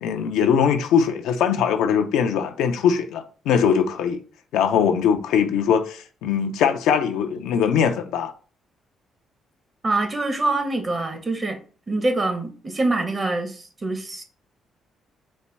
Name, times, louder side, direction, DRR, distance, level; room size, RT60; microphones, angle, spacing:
voice 1, 0.0-4.2 4.5-8.3, left 7 dB, 80° left, 0.4 m, -21 dB
voice 2, 9.8-11.6 11.9-14.2, right 2 dB, 35° right, 0.9 m, -25 dB
4.1 x 2.2 x 3.3 m
supercardioid pair, 65°, 0 cm